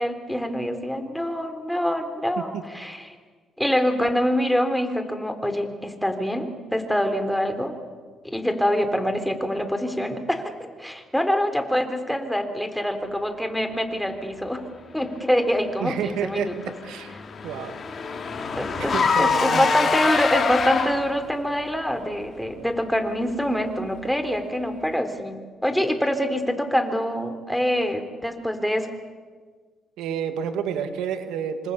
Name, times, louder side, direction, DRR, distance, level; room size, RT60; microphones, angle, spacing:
voice 1, 0.0-3.1 3.6-7.8 8.2-14.6 14.9-16.5 18.6-28.9, equal, 5° left, 7 dB, 3.7 m, -25 dB
voice 2, 15.8-16.5 16.8-17.1 17.4-17.8 18.8-19.9 30.0-31.7, right 8 dB, 90° right, 8 dB, 2.1 m, -29 dB
Car / Engine, 16.2-21.2, left 5 dB, 45° left, 3.9 m, -25 dB
26.5 x 26.0 x 8.3 m, 1.5 s
cardioid pair, 90°, 0 cm